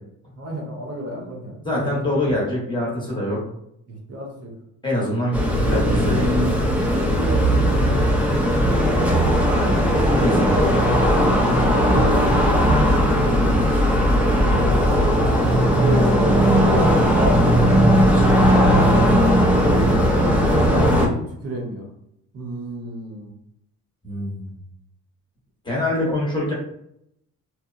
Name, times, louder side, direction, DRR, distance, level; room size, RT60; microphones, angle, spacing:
voice 1, 0.3-2.1 3.9-4.5 7.1-9.2 15.7-17.8 19.6-21.9 22.3-23.3 26.0-26.1, right 1 dB, 50° right, 0 dB, 0.7 m, -31 dB
voice 2, 1.6-3.4 4.8-6.3 9.5-9.8 10.2-10.7 18.5-18.8 24.0-24.6 25.6-26.5, left 1 dB, 15° left, -4 dB, 0.8 m, -24 dB
sound 1, 5.3-21.1, equal, 5° right, 0.4 m, -17 dB
2.8 x 2.0 x 2.4 m, 0.74 s
cardioid pair, 125°, 32 cm